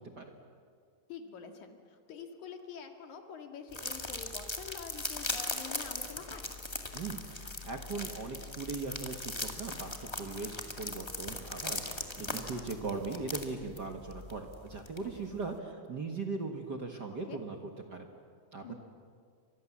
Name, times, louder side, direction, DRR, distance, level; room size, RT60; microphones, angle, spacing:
voice 1, 1.1-6.5 17.3-17.4 18.6-18.7, left 6 dB, 70° left, 5 dB, 3.3 m, -46 dB
sound 1, 3.7-15.4, left 2 dB, 10° left, 1.4 m, -39 dB
voice 2, 6.9-18.1 18.5-18.7, right 4 dB, 45° right, 3 dB, 1.7 m, -39 dB
29.0 x 25.5 x 7.3 m, 2.1 s
omnidirectional pair, 3.5 m